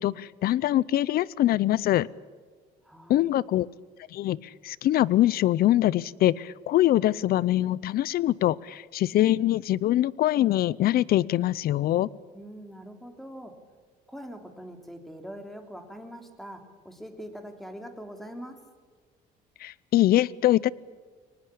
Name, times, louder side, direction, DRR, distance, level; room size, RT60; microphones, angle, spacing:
voice 1, 0.0-2.1 3.1-3.7 4.1-12.1 19.6-20.7, left 14 dB, 65° left, 22 dB, 0.7 m, -23 dB
voice 2, 2.8-3.3 12.3-13.6 14.1-18.6, equal, ahead, 5 dB, 3.4 m, -43 dB
24.0 x 19.5 x 8.6 m, 1.5 s
cardioid pair, 110°, 17 cm